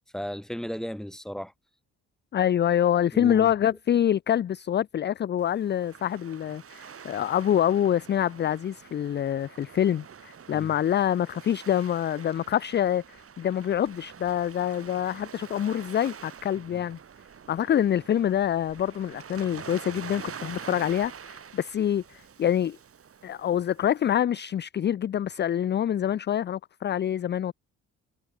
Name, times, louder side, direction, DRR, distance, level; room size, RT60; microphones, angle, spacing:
voice 1, 0.1-1.5 3.1-3.5 10.5-10.7 16.7-16.8, equal, ahead, 5.4 m, -35 dB
voice 2, 2.3-17.0 17.5-22.8 23.2-27.5, left 10 dB, 35° left, 0.5 m, -26 dB
Waves surf, 5.4-24.2, right 7 dB, 50° right, 6.2 m, -46 dB
cardioid pair, 90°, 30 cm